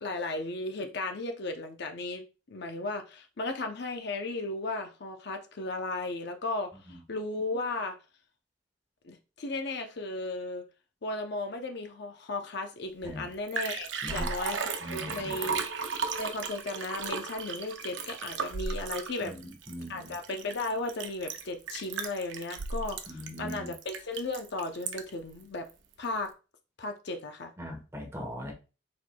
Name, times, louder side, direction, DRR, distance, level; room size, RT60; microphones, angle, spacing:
voice 1, 0.0-8.0 9.0-10.6 11.0-15.6 16.1-19.4 19.9-25.7 26.0-26.3 26.8-27.5, left 2 dB, 60° left, 0.7 m, -35 dB
Liquid, 13.0-13.1 13.3-25.2 25.7-25.8, right 5 dB, 65° right, 0.6 m, -35 dB
voice 2, 14.8-15.4 19.2-20.1 23.1-23.7 27.6-28.5, equal, 15° right, 1.1 m, -40 dB
4.5 x 4.2 x 2.3 m
head